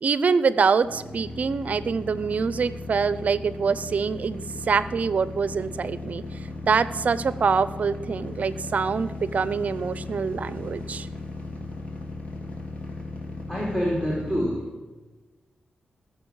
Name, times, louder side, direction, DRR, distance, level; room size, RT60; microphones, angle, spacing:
voice 1, 0.0-11.1, right 5 dB, 55° right, 15 dB, 0.6 m, -25 dB
sound 1, 0.8-14.4, left 2 dB, 45° left, 2.7 m, -37 dB
voice 2, 13.5-14.9, equal, 15° left, -4 dB, 3.6 m, -27 dB
19.0 x 6.7 x 6.4 m, 1.2 s
wide cardioid pair, 110°, 3 cm